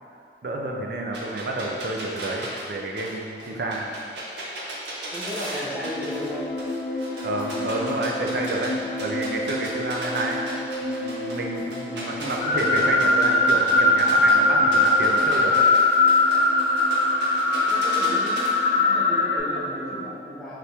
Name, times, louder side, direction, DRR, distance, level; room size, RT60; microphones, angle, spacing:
voice 1, 0.4-3.9 7.2-10.4 10.8-15.7, right 2 dB, 60° right, 0 dB, 0.4 m, -29 dB
sound 1, 1.1-6.3 6.6-8.7 9.0-14.3 14.7-18.5, right 1 dB, 85° right, 0.8 m, -36 dB
voice 2, 5.1-6.5 17.6-20.6, equal, 5° left, -9 dB, 0.7 m, -35 dB
Ambient Ukulele Drone, 5.8-20.1, left 1 dB, 55° left, 0.4 m, -33 dB
sound 2, 12.4-19.4, left 2 dB, 35° left, 1.4 m, -20 dB
4.3 x 2.5 x 3.4 m, 2.4 s
head